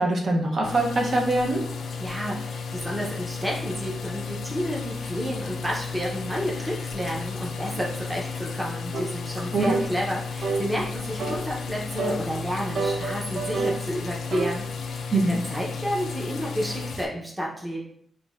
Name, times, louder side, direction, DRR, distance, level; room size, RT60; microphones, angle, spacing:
voice 1, 0.0-1.6 9.5-9.7 15.1-15.4, right 2 dB, 50° right, -1 dB, 0.8 m, -23 dB
sound 1, 0.6-17.0, left 5 dB, 80° left, 0.5 m, -34 dB
voice 2, 2.0-17.8, equal, 10° right, -3 dB, 0.8 m, -31 dB
sound 2, 8.9-9.1 9.6-9.9 10.4-10.7 11.2-11.5 12.0-12.2 12.8-13.8 14.3-14.6, right 3 dB, 80° right, 0.7 m, -27 dB
6.8 x 2.6 x 2.5 m, 0.65 s
wide cardioid pair, 170°, 0 cm